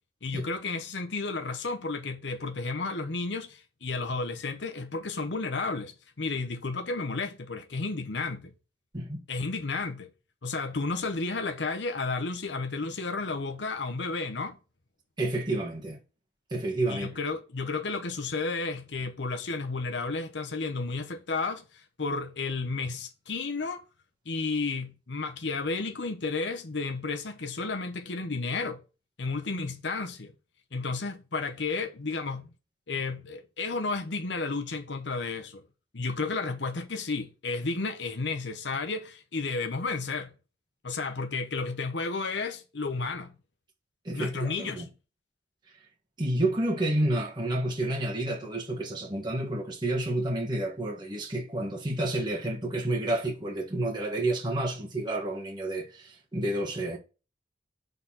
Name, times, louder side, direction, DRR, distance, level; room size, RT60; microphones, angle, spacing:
voice 1, 0.2-8.5 9.3-10.1 10.4-14.6 16.9-23.8 24.3-28.8 29.2-30.3 30.7-32.4 32.9-35.6 35.9-40.3 40.8-43.3 44.1-44.8, left 3 dB, 75° left, 1.0 m, -32 dB
voice 2, 15.2-16.0 16.5-17.1 44.0-44.9 46.2-57.0, right 1 dB, 25° right, 1.5 m, -30 dB
6.6 x 4.1 x 5.6 m
head